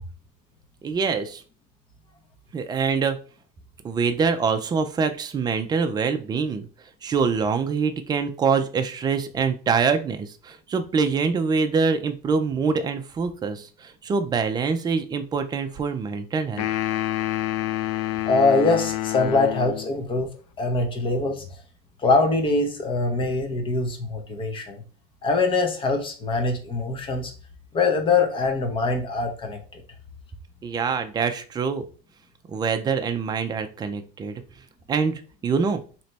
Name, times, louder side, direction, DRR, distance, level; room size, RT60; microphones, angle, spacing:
voice 1, 0.8-1.4 2.5-3.2 3.8-6.7 7.0-16.7 30.6-31.8 32.5-34.4 34.9-35.8, right 5 dB, 20° right, 7 dB, 0.5 m, -25 dB
sound 1, 16.6-19.9, left 14 dB, 85° left, 0.5 m, -27 dB
voice 2, 18.3-20.3 20.6-21.6 22.0-24.8 25.2-27.3 27.7-29.8, left 3 dB, 25° left, 4 dB, 0.9 m, -23 dB
3.2 x 3.0 x 4.1 m, 0.37 s
supercardioid pair, 140°, 20 cm